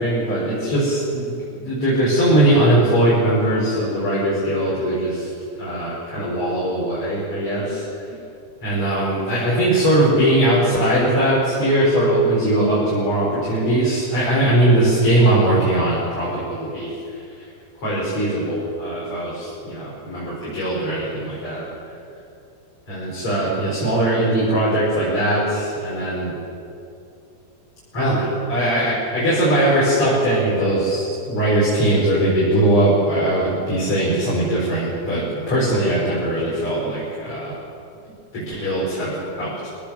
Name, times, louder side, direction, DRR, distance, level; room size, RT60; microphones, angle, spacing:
voice 1, 0.0-1.3 1.6-5.3 5.5-7.8 8.6-17.0 17.8-21.6 22.9-26.4 27.9-37.6 38.3-39.7, right 1 dB, 35° left, -9 dB, 7.1 m, -20 dB
23.0 x 18.5 x 7.8 m, 2.6 s
omnidirectional pair, 4.4 m